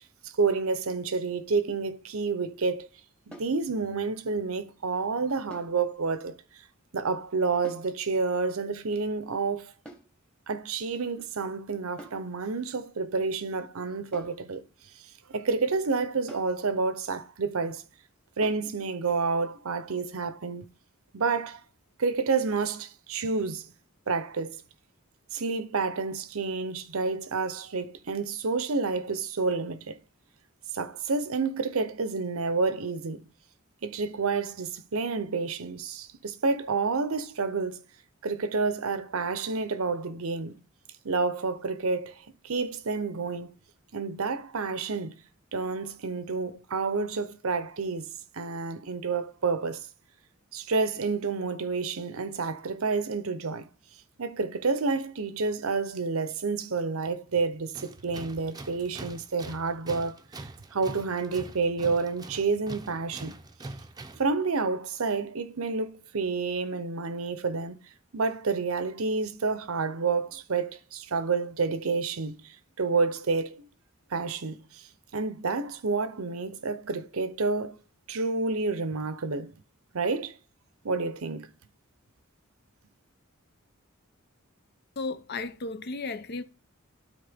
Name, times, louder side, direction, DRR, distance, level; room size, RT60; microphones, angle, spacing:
voice 1, 0.0-2.9 3.3-6.4 6.9-9.7 10.5-14.6 15.0-17.8 18.4-20.7 21.1-21.6 22.0-23.7 24.1-24.6 25.3-30.0 30.7-33.2 33.8-37.8 38.2-40.6 41.0-43.5 43.9-45.1 45.5-49.9 50.5-53.7 54.2-63.3 64.1-67.8 68.1-73.7 74.1-77.8 78.1-79.5 79.9-80.4 80.8-81.5, right 4 dB, 80° right, 0.8 m, -29 dB
sound 1, 3.3-3.6 5.5-5.8 7.6-7.9 9.8-10.2 12.0-12.3 14.1-14.4 16.3-16.6 18.4-18.7, right 1 dB, 5° left, 1.2 m, -47 dB
Tools, 57.7-64.3, right 2 dB, 20° right, 0.6 m, -43 dB
voice 2, 85.0-86.4, left 3 dB, 50° left, 0.6 m, -34 dB
12.5 x 4.4 x 3.5 m
head